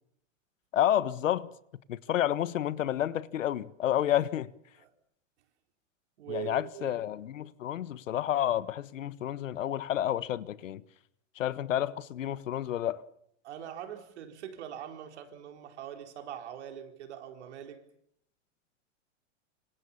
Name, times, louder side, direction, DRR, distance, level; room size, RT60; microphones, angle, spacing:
voice 1, 0.7-1.5 1.9-4.5 6.3-10.8 11.3-13.0, left 11 dB, 85° left, 1.5 m, -30 dB
voice 2, 6.2-7.0 13.4-17.8, right 10 dB, 65° right, 4.4 m, -42 dB
26.5 x 26.0 x 7.2 m
supercardioid pair, 170°, 37 cm